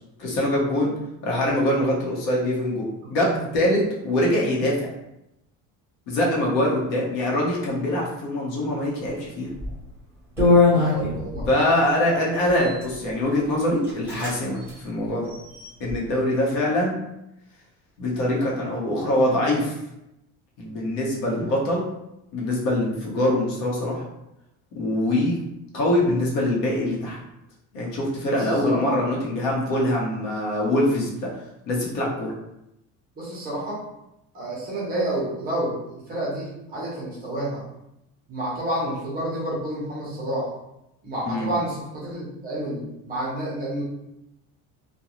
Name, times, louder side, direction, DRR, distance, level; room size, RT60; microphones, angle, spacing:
voice 1, 0.2-0.9 1.2-2.8 3.1-4.9 6.1-9.5 11.5-15.3 15.8-16.9 18.0-19.7 20.6-21.8 22.3-24.0 24.8-25.4 25.7-27.2 27.7-31.3 31.7-32.3 41.2-41.5, left 1 dB, 65° left, -3 dB, 0.9 m, -23 dB
sound 1, 9.5-9.8 10.4-11.5 12.5-12.9 13.5-13.6 13.8-14.3 14.6-14.7 15.2-15.9, left 3 dB, 5° right, 1.1 m, -22 dB
voice 2, 10.7-11.5 21.5-21.6 28.3-29.0 33.2-33.8 34.3-35.8 36.1-37.6 38.3-40.5 41.0-43.8, right 1 dB, 25° right, -5 dB, 0.7 m, -29 dB
2.4 x 2.2 x 2.9 m, 0.86 s
cardioid pair, 180°, 36 cm